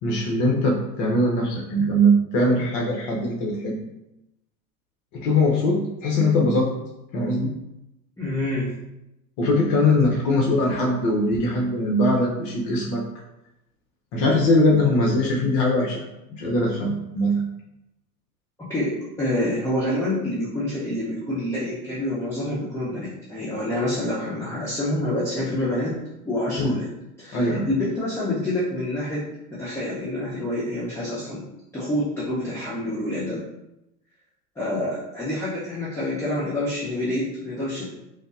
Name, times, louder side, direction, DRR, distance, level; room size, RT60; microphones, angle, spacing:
voice 1, 0.0-3.8 5.1-6.7 7.1-7.5 9.4-13.0 14.1-16.0 16.4-17.4 26.6-26.8 27.3-27.7, left 1 dB, 45° left, -2 dB, 0.7 m, -21 dB
voice 2, 8.2-8.7 18.6-26.0 26.2-26.9 27.2-31.4 31.7-33.4 34.6-37.8, left 1 dB, 5° left, -9 dB, 0.6 m, -27 dB
5.0 x 2.0 x 2.4 m, 0.89 s
hypercardioid pair, 100°, 50 cm